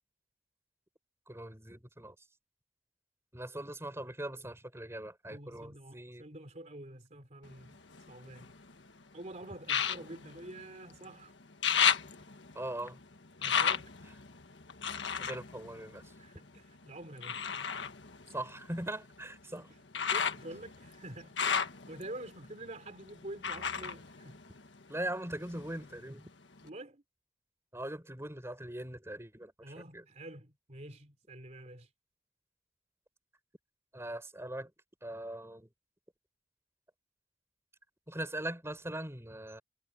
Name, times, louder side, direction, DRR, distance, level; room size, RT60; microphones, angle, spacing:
voice 1, 1.3-2.1 3.3-6.2 12.5-13.0 15.2-16.0 18.3-19.7 24.9-26.3 27.7-29.5 29.9-30.0 33.9-34.7 35.0-35.7 38.1-39.6, right 1 dB, 15° right, 6.1 m, -40 dB
voice 2, 5.3-7.8 8.1-8.5 9.1-11.3 13.4-13.9 16.2-17.5 19.5-24.4 26.6-27.0 29.6-31.9, right 1 dB, 40° right, 3.5 m, -48 dB
sound 1, 7.4-8.8 9.6-11.1 11.4-16.6 17.2-25.0 25.4-26.2 26.7-26.8, left 7 dB, 80° left, 1.6 m, -34 dB
head